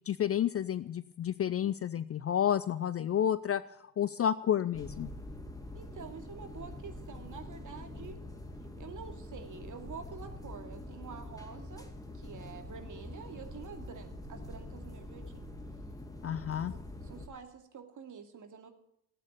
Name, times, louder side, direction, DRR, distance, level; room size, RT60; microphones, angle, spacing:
voice 1, 0.1-3.6 4.0-5.1 16.2-16.7, left 9 dB, 30° left, 16 dB, 0.6 m, -30 dB
sound 1, 4.7-17.3, left 1 dB, 10° left, 2.3 m, -45 dB
voice 2, 5.7-8.2 8.8-11.9 12.1-15.5 16.7-18.7, right 6 dB, 40° right, 5 dB, 2.6 m, -48 dB
14.5 x 9.0 x 9.2 m, 0.75 s
hypercardioid pair, 60°, 46 cm